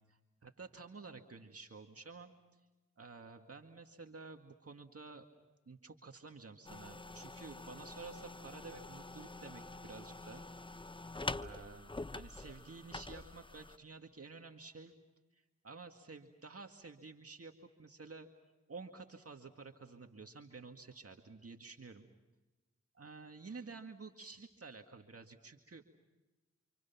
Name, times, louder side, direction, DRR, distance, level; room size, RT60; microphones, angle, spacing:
voice 1, 0.0-2.6 3.0-5.3 5.7-10.5 11.4-14.9 15.3-18.3 18.7-22.1 22.9-25.8, right 4 dB, 50° right, 4 dB, 2.1 m, -51 dB
sound 1, 6.6-13.8, left 2 dB, 15° left, 0.8 m, -46 dB
29.0 x 28.0 x 5.9 m, 1.1 s
cardioid pair, 45°, 30 cm